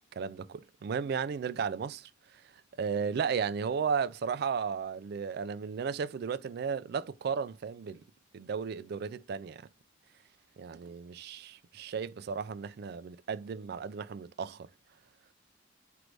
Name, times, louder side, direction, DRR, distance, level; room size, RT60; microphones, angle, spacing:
voice 1, 0.2-2.1 2.8-8.0 8.3-9.6 10.6-14.7, right 6 dB, 50° right, 0.3 m, -34 dB
4.7 x 2.6 x 3.2 m
head